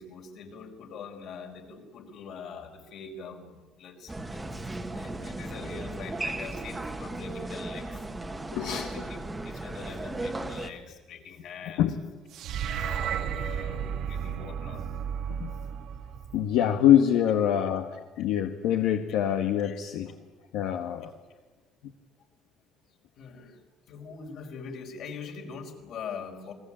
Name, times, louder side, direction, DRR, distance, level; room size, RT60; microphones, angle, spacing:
voice 1, 0.0-8.1 8.7-11.9 12.6-14.9 18.1-18.2 19.6-19.8 23.2-23.6 23.9-26.5, left 5 dB, 50° left, 4 dB, 4.9 m, -43 dB
sound 1, 4.1-10.7, right 2 dB, 10° right, 1.5 m, -36 dB
voice 2, 8.5-9.1 11.8-12.0 15.4-15.5 16.3-20.1 20.5-21.1, left 10 dB, 80° left, 5 dB, 1.8 m, -25 dB
sound 2, 12.3-16.7, right 8 dB, 55° right, 1.4 m, -33 dB
29.0 x 21.5 x 8.9 m, 1.2 s
cardioid pair, 170°, 0 cm